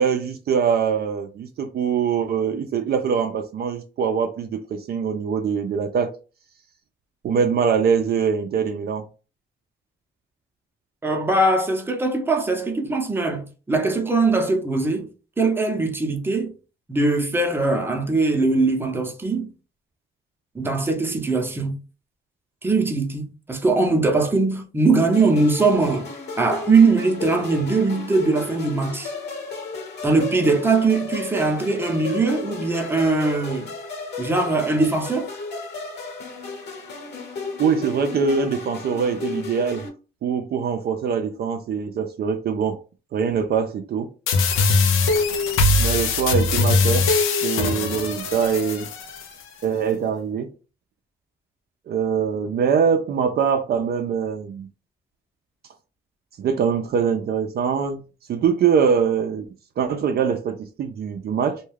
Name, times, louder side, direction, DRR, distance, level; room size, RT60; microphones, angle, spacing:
voice 1, 0.0-6.1 7.2-9.0 37.6-39.9 40.2-42.8 43.1-44.1 45.8-47.1 47.4-48.9 49.6-50.5 51.9-54.7 56.4-58.0 58.3-59.5 59.8-61.6, right 6 dB, 55° right, 0.4 m, -23 dB
voice 2, 11.0-15.1 15.4-16.5 16.9-19.5 20.5-21.7 22.6-26.1 26.4-29.1 30.0-33.7 34.2-35.3, right 3 dB, 10° right, 0.6 m, -21 dB
sound 1, 25.1-39.9, left 4 dB, 60° left, 1.0 m, -34 dB
sound 2, 44.3-49.3, left 3 dB, 90° left, 0.5 m, -21 dB
2.2 x 2.2 x 3.2 m
cardioid pair, 90°, 20 cm